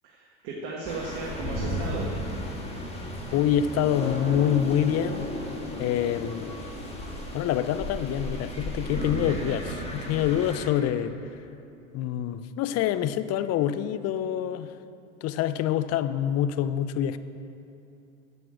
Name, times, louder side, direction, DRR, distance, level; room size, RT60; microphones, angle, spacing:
voice 1, 0.0-2.1, right 3 dB, 65° right, -2 dB, 1.6 m, -35 dB
sound 1, 0.8-10.7, left 1 dB, 15° left, 2.0 m, -34 dB
voice 2, 3.3-5.3 5.8-6.6 7.3-9.6 9.9-11.2 11.9-14.8 15.2-17.2, left 10 dB, 40° left, 13 dB, 0.5 m, -26 dB
7.9 x 7.8 x 7.7 m, 2.7 s
hypercardioid pair, 95°, 40 cm